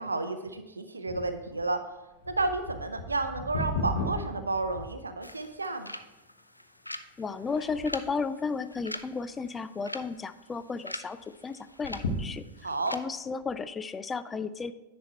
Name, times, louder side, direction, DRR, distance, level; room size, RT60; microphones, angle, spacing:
voice 1, 0.0-1.8 2.3-5.9 12.6-13.0, right 3 dB, 80° right, 9 dB, 0.5 m, -31 dB
sound 1, 1.1-5.5 6.1-6.2 6.9-7.2 7.5-8.1 8.7-9.4 9.7-9.8 10.1-10.2 11.7-12.8 13.4-13.5, left 2 dB, 60° left, 1.3 m, -36 dB
sound 2, 5.2-13.0, left 1 dB, 85° left, 0.4 m, -44 dB
voice 2, 7.2-11.2 11.4-12.4 12.9-14.7, left 4 dB, 15° left, 13 dB, 0.3 m, -33 dB
10.0 x 4.2 x 4.5 m, 1.0 s
figure-of-eight pair, 90°, 0 cm